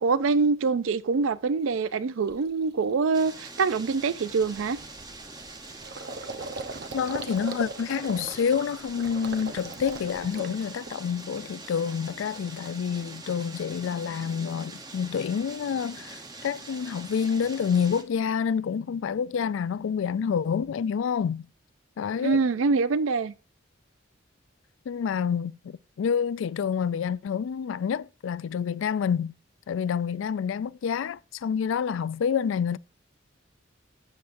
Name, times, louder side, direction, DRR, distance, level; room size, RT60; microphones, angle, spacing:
voice 1, 0.0-4.8 22.2-23.3, right 4 dB, 80° right, 0.4 m, -25 dB
Gurgling, 1.7-1.8 2.3-2.5 2.9-3.1 3.3-11.4 11.7-12.4, right 3 dB, 55° right, 0.8 m, -40 dB
sound 1, 3.1-18.0, right 3 dB, 20° right, 0.9 m, -44 dB
voice 2, 6.9-21.4 22.0-22.4 24.9-29.3 29.7-32.8, left 7 dB, 70° left, 0.3 m, -28 dB
12.5 x 7.7 x 2.6 m
head